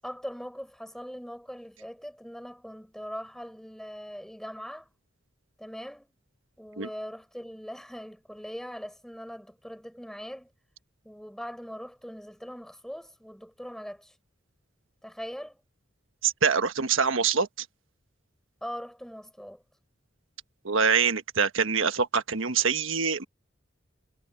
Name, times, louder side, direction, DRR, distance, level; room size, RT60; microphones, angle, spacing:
voice 1, 0.0-4.9 5.6-6.1 6.6-10.5 11.0-14.1 15.0-15.6 18.6-19.6, equal, ahead, 7.8 m, -41 dB
voice 2, 16.2-17.7 20.6-23.2, right 6 dB, 80° right, 1.4 m, -25 dB
head